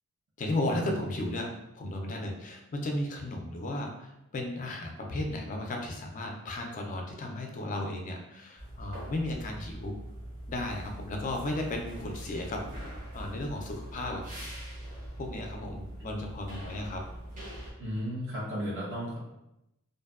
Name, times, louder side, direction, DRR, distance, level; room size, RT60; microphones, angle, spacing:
voice 1, 0.4-1.5 1.8-9.9 10.5-14.2 15.2-17.0, left 1 dB, 35° left, 2 dB, 0.3 m, -34 dB
sound 1, 8.6-17.7, right 1 dB, 35° right, 0.6 m, -42 dB
voice 2, 17.8-19.2, equal, 60° right, -6 dB, 0.9 m, -34 dB
2.5 x 2.1 x 2.3 m, 0.88 s
head